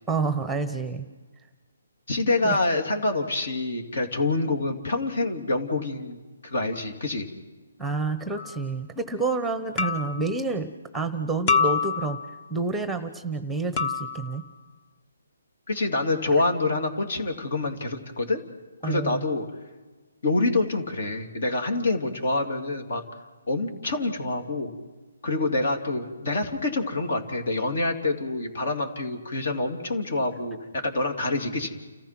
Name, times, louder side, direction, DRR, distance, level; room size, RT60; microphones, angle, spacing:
voice 1, 0.1-1.1 2.4-2.6 7.8-12.2 12.5-14.4 18.8-19.2, right 4 dB, ahead, 11 dB, 1.0 m, -29 dB
voice 2, 2.1-6.2 6.4-7.3 15.7-18.4 18.8-19.5 20.2-23.0 23.5-24.7 25.2-31.8, left 2 dB, 60° left, 4 dB, 3.2 m, -26 dB
sound 1, 8.4-8.6 9.8-10.3 11.5-12.4 13.8-14.4, left 5 dB, 30° left, 1.0 m, -26 dB
30.0 x 14.5 x 6.1 m, 1.3 s
hypercardioid pair, 155°, 0 cm